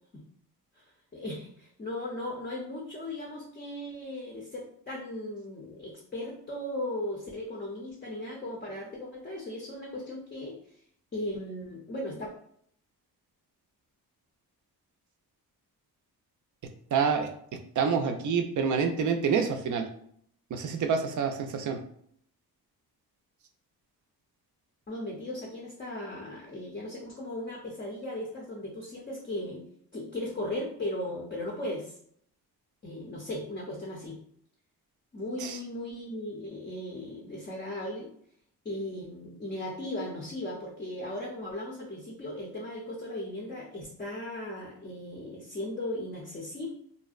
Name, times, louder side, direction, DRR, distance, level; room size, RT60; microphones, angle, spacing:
voice 1, 1.1-10.6 11.1-12.3 24.9-29.6 29.9-32.0 32.8-34.2 35.1-38.1 38.6-46.7, left 1 dB, 25° left, -2 dB, 0.5 m, -37 dB
voice 2, 16.9-17.3 17.8-19.9 20.5-21.8 35.4-35.6, right 6 dB, 50° right, 5 dB, 0.4 m, -27 dB
2.6 x 2.0 x 2.4 m, 0.65 s
cardioid pair, 90°, 40 cm